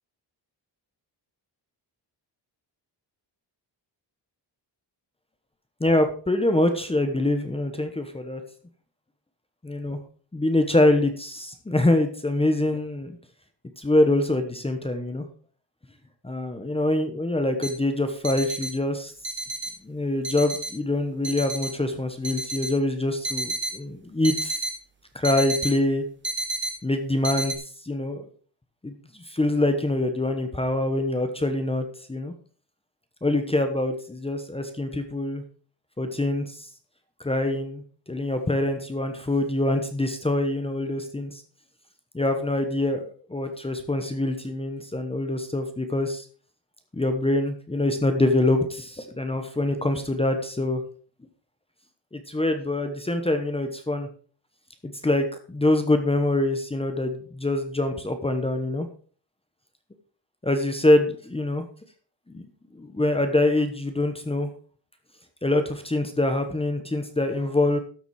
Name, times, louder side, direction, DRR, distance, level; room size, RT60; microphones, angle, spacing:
voice 1, 5.8-8.4 9.6-10.0 10.3-13.2 13.8-15.2 16.2-19.1 19.8-24.6 25.1-26.0 26.8-27.5 27.8-28.2 28.8-32.3 33.2-35.4 36.0-36.7 37.2-37.8 38.1-41.4 42.1-46.2 46.9-50.8 52.1-54.1 55.0-58.9 60.4-61.6 62.3-62.4 62.7-64.5 65.4-67.8, left 1 dB, 15° left, 7 dB, 1.0 m, -24 dB
sound 1, 17.6-17.7 18.2-18.7 19.2-19.7 20.2-20.7 21.2-21.7 22.2-22.7 23.2-23.7 24.2-24.7 25.2-25.7 26.2-26.7 27.2-27.5, right 2 dB, 25° right, 1.6 m, -30 dB
13.0 x 7.1 x 4.7 m, 0.41 s
wide cardioid pair, 175°, 44 cm